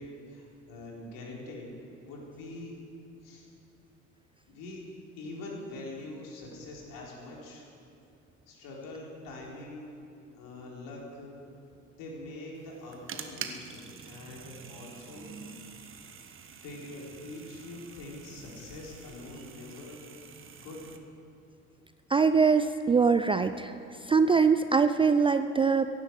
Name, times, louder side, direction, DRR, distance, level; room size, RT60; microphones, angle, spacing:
voice 1, 0.0-1.7 2.0-2.8 3.2-3.5 4.5-4.8 5.2-7.6 8.5-9.9 10.3-11.3 12.0-15.3 16.6-20.0 20.6-20.8, left 2 dB, 55° left, -2 dB, 4.1 m, -44 dB
sound 1, 12.5-21.0, right 6 dB, 30° right, 1.4 m, -46 dB
voice 2, 22.1-23.7 24.0-25.9, right 5 dB, 15° right, 10 dB, 0.4 m, -23 dB
16.5 x 11.0 x 7.7 m, 2.6 s
figure-of-eight pair, 55°, 39 cm